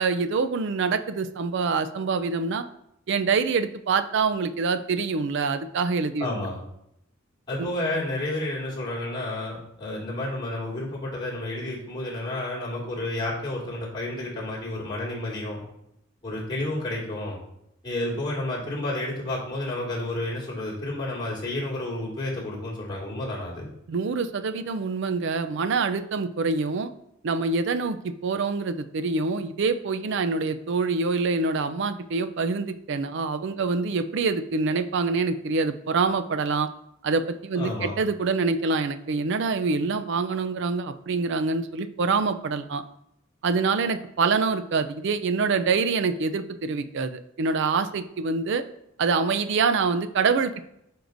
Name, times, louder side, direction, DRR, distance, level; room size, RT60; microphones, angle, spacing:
voice 1, 0.0-2.6 3.1-6.3 7.6-7.7 23.9-26.9 27.2-36.7 37.0-42.8 43.4-48.6 49.0-50.6, right 4 dB, 65° right, 10 dB, 0.4 m, -25 dB
voice 2, 6.2-6.6 7.5-15.6 16.2-17.4 17.8-23.7 37.5-37.9, left 1 dB, 25° left, -7 dB, 2.2 m, -31 dB
10.0 x 4.6 x 2.6 m, 0.79 s
head